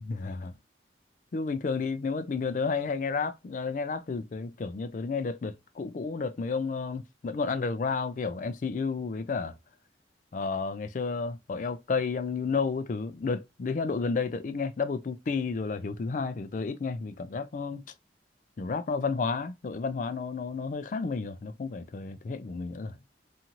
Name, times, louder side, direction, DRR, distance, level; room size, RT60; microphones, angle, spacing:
voice 1, 0.1-0.5 1.3-9.5 10.3-17.8 18.6-22.9, left 4 dB, 45° left, 0.3 m, -31 dB
2.7 x 2.5 x 2.9 m
head